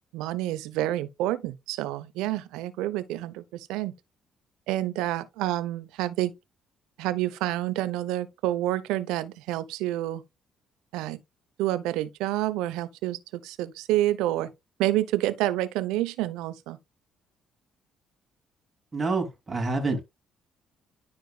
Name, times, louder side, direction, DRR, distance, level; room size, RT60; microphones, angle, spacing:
voice 1, 0.1-3.9 4.7-6.3 7.0-10.2 10.9-11.2 11.6-14.5 14.8-16.8, right 15 dB, 80° right, 0.7 m, -28 dB
voice 2, 18.9-20.0, right 3 dB, 30° right, 2.9 m, -27 dB
11.0 x 4.6 x 2.3 m
supercardioid pair, 60°, 0 cm